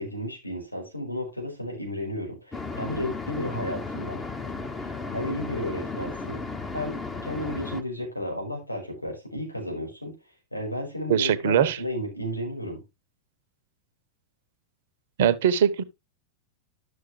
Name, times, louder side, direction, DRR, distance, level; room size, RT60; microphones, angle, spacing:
voice 1, 0.0-4.2 5.1-6.4 6.7-10.1 10.5-12.8, left 1 dB, 85° left, 5.2 m, -33 dB
sound 1, 2.5-7.8, left 3 dB, 15° left, 1.2 m, -34 dB
voice 2, 11.1-11.8 15.2-15.8, right 9 dB, 55° right, 0.9 m, -21 dB
12.0 x 6.4 x 3.2 m
figure-of-eight pair, 90°, 0 cm